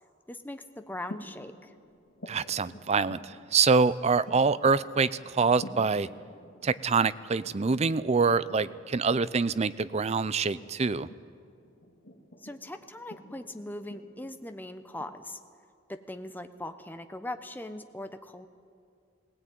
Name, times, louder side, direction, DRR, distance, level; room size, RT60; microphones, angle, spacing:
voice 1, 0.3-1.7 12.4-15.4 16.1-18.5, left 1 dB, 10° left, 8 dB, 0.9 m, -40 dB
sound 1, 0.9-15.1, left 1 dB, 70° left, 2.4 m, -51 dB
voice 2, 2.3-6.1 6.6-11.1, right 4 dB, 35° right, 16 dB, 0.5 m, -25 dB
18.5 x 17.5 x 9.4 m, 2.4 s
head